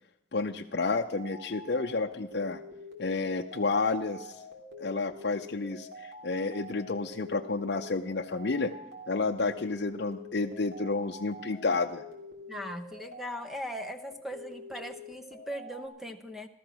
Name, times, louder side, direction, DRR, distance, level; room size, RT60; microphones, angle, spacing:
voice 1, 0.3-2.6 3.0-4.3 4.8-8.7 9.1-12.0, left 3 dB, 65° left, 3 dB, 0.6 m, -30 dB
sound 1, 0.7-15.9, left 1 dB, 60° right, 3.1 m, -47 dB
voice 2, 12.5-16.5, equal, ahead, 8 dB, 0.9 m, -39 dB
15.0 x 13.5 x 6.0 m, 0.84 s
head